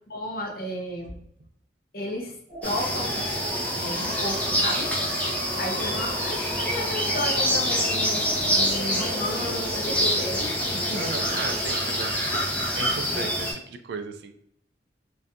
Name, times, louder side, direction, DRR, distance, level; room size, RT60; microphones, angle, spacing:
voice 1, 0.1-1.2 1.9-3.3 3.7-4.9 5.6-11.1 13.0-13.2, left 1 dB, 55° left, 1 dB, 0.6 m, -33 dB
sound 1, 2.5-10.2, equal, 35° right, 0.9 m, -37 dB
sound 2, 2.6-13.5, equal, 10° left, 0.4 m, -26 dB
voice 2, 10.9-14.4, right 4 dB, 65° right, 8 dB, 0.3 m, -36 dB
2.3 x 2.2 x 2.6 m, 0.71 s
head